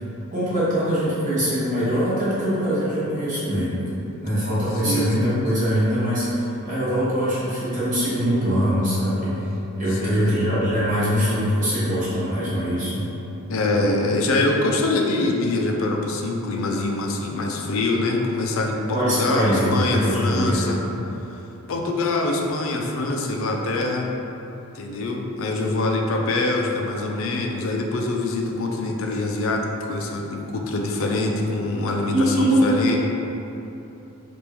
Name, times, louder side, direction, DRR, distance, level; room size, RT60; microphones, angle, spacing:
voice 1, 0.3-3.8 4.2-9.3 9.8-13.1 18.9-20.6 32.1-32.7, equal, 35° right, -11 dB, 1.0 m, -22 dB
voice 2, 4.8-5.4 9.9-10.3 13.5-20.8 21.7-24.1 24.7-29.6 29.9-33.0, left 2 dB, 65° left, 1 dB, 0.4 m, -24 dB
3.4 x 2.5 x 4.4 m, 3.0 s
head